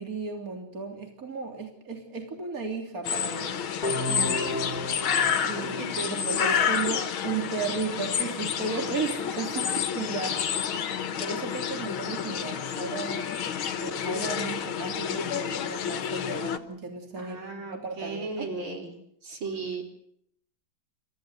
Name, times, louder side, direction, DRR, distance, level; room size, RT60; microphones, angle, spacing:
voice 1, 0.0-3.5 4.1-4.9 5.4-10.7 11.2-13.3 13.5-18.5, right 4 dB, 45° right, 3 dB, 3.8 m, -35 dB
sound 1, 3.0-16.6, left 8 dB, 80° left, 2.2 m, -29 dB
sound 2, 3.8-6.8, left 1 dB, 50° left, 2.1 m, -35 dB
voice 2, 5.8-6.7 8.7-9.8 17.2-18.9 19.2-19.8, right 3 dB, 80° right, 3 dB, 4.7 m, -37 dB
29.0 x 15.0 x 8.2 m, 0.71 s
omnidirectional pair, 2.2 m